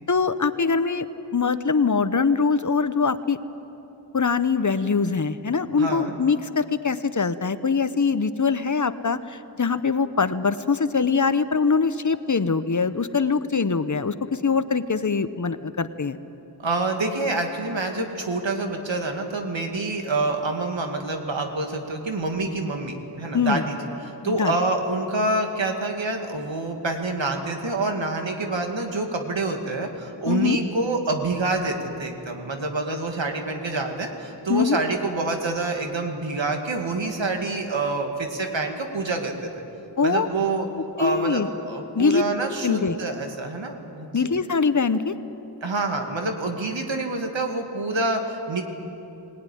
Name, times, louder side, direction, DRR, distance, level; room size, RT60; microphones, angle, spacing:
voice 1, 0.1-1.1 1.3-3.4 4.1-16.2 23.3-23.6 24.2-24.5 30.3-30.6 34.5-34.8 40.0-40.3 41.0-41.5 41.9-42.2 42.6-43.0 44.1-45.1, left 5 dB, 40° left, 12 dB, 0.9 m, -23 dB
voice 2, 5.8-6.1 16.6-23.8 24.0-39.6 40.0-40.7 41.0-44.3 45.6-48.6, right 2 dB, 85° right, 3 dB, 2.3 m, -27 dB
19.5 x 19.0 x 10.0 m, 3.0 s
wide cardioid pair, 65°, 44 cm